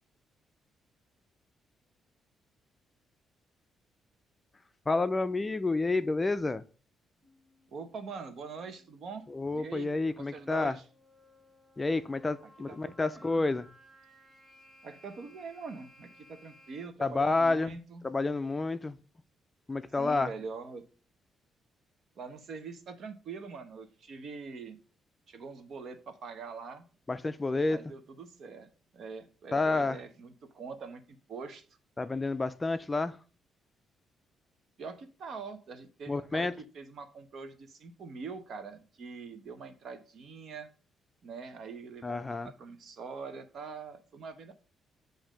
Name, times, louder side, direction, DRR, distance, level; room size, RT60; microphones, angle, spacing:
voice 1, 4.9-6.6 9.3-10.8 11.8-13.7 17.0-17.7 18.0-19.0 19.7-20.3 27.1-27.8 29.5-30.0 32.0-33.2 36.1-36.5 42.0-42.5, left 3 dB, 20° left, 0.4 m, -29 dB
sound 1, 7.2-16.9, left 1 dB, 30° right, 1.9 m, -60 dB
voice 2, 7.7-9.3 9.5-9.9 10.2-10.8 12.7-13.4 14.8-18.0 20.0-20.8 22.2-24.8 25.3-26.8 27.7-31.6 34.8-40.7 41.2-44.5, right 5 dB, 60° right, 0.8 m, -44 dB
7.2 x 2.6 x 5.0 m
cardioid pair, 90°, 0 cm